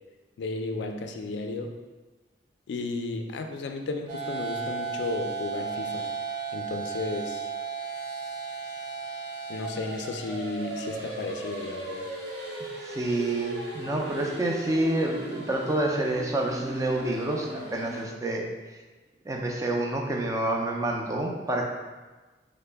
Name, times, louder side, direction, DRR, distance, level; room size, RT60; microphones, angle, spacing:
voice 1, 0.4-1.8 2.7-6.1 6.5-7.5 9.5-12.1, left 3 dB, 80° left, 5 dB, 0.3 m, -33 dB
sound 1, 4.1-18.0, right 3 dB, 70° right, 0.8 m, -36 dB
voice 2, 12.8-18.5 19.2-21.7, right 1 dB, 20° right, 0 dB, 0.3 m, -28 dB
3.7 x 2.0 x 3.3 m, 1.3 s
head